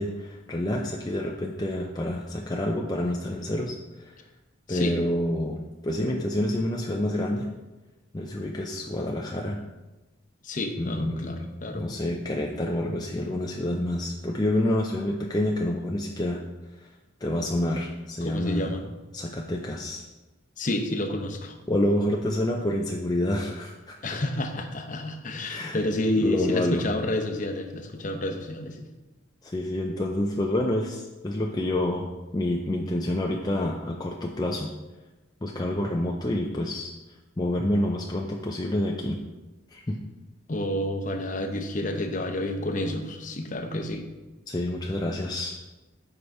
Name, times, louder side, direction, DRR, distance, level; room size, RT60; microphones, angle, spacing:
voice 1, 0.0-4.2 4.7-7.5 8.1-9.6 10.8-11.5 11.7-16.4 16.8-16.9 17.2-18.8 19.1-20.0 21.7-24.2 25.5-25.8 26.2-26.8 29.4-32.1 32.3-34.7 35.4-36.9 37.4-39.2 39.7-40.0 44.5-45.6, left 1 dB, 20° left, 0 dB, 0.4 m, -28 dB
voice 2, 10.4-11.9 18.2-18.8 20.6-21.6 24.0-28.9 40.5-44.0, left 1 dB, 40° left, 4 dB, 0.8 m, -29 dB
7.7 x 4.9 x 4.6 m, 1.1 s
head